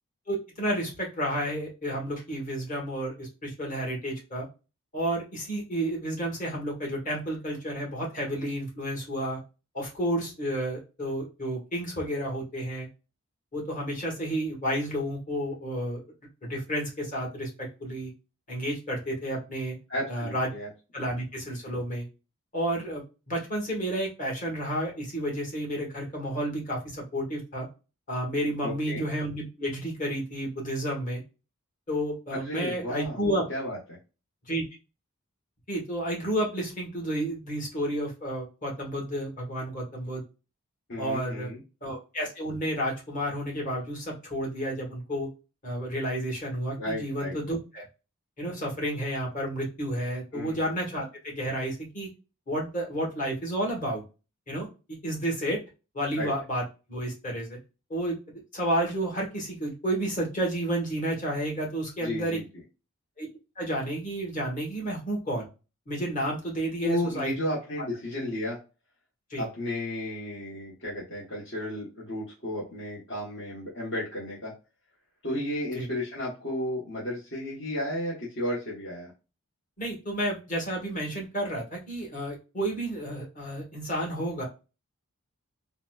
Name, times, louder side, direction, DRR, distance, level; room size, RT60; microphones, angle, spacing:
voice 1, 0.3-4.5 4.9-9.4 9.7-12.9 13.5-16.0 16.4-17.5 17.8-18.1 18.5-19.8 20.1-20.5 20.9-22.1 22.5-27.7 28.1-31.2 31.9-33.4 34.5-34.6 35.7-40.2 41.0-41.5 41.8-45.3 45.6-47.9 48.4-52.1 52.5-54.0 54.5-54.7 55.0-55.6 55.9-56.6 56.9-57.6 57.9-62.4 63.2-63.3 63.6-65.5 65.9-67.3 69.3-69.4 75.7-75.9 79.8-84.4, right 1 dB, 35° left, -1 dB, 1.3 m, -31 dB
voice 2, 19.9-20.7 28.6-29.0 32.3-33.2 33.5-33.8 40.9-41.6 46.8-47.3 50.3-50.6 56.2-56.3 62.0-62.4 66.8-68.6 69.4-74.5 75.2-79.1, left 1 dB, 55° left, -6 dB, 1.1 m, -33 dB
3.9 x 2.1 x 2.3 m, 0.30 s
head